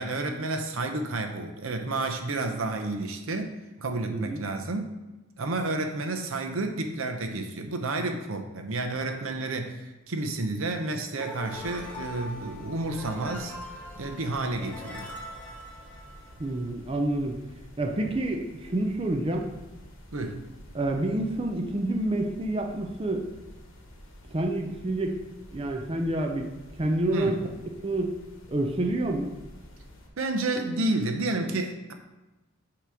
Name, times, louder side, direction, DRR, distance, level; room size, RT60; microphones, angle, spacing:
voice 1, 0.0-5.0 5.4-13.5 14.0-15.1 20.1-20.4 27.1-27.4 30.2-31.9, right 2 dB, 75° right, 5 dB, 0.8 m, -30 dB
sound 1, 11.2-16.7, left 1 dB, 5° left, 1.0 m, -42 dB
sound 2, 11.4-30.1, equal, 65° left, 1.3 m, -50 dB
voice 2, 16.4-17.4 17.8-19.5 20.7-23.3 24.3-25.2 25.5-27.4 27.8-28.1 28.5-29.4, right 1 dB, 25° right, 2 dB, 0.5 m, -28 dB
8.2 x 3.0 x 6.2 m, 1.1 s
head